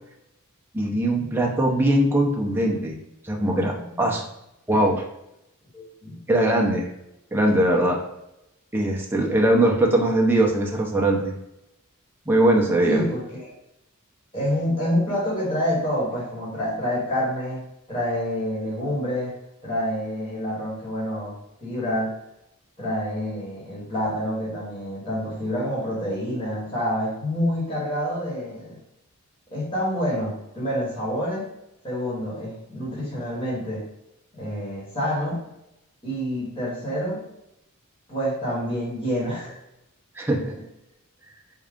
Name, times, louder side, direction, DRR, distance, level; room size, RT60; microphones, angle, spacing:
voice 1, 0.7-3.0 3.2-4.2 4.7-5.0 6.3-6.9 7.3-8.0 8.7-11.3 12.3-13.0 40.2-40.5, right 1 dB, 10° right, -1 dB, 0.5 m, -21 dB
voice 2, 5.7-6.2 12.8-13.5 14.3-19.3 19.6-22.1 22.8-28.8 29.5-31.5 31.8-33.8 34.3-35.5 36.0-37.3 38.1-39.6, equal, 25° left, -7 dB, 1.3 m, -27 dB
3.6 x 2.3 x 3.5 m, 0.86 s
head